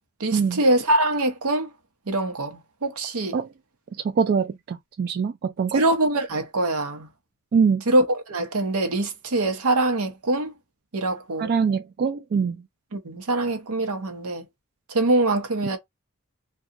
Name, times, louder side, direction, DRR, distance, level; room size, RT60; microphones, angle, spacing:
voice 1, 0.2-1.7 2.1-3.4 5.7-7.1 7.9-10.5 10.9-11.5 12.9-14.4 14.9-15.8, right 2 dB, 85° right, 0.8 m, -23 dB
voice 2, 4.1-5.8 7.5-7.8 11.4-12.6, right 6 dB, 45° right, 0.3 m, -23 dB
2.8 x 2.3 x 2.5 m
head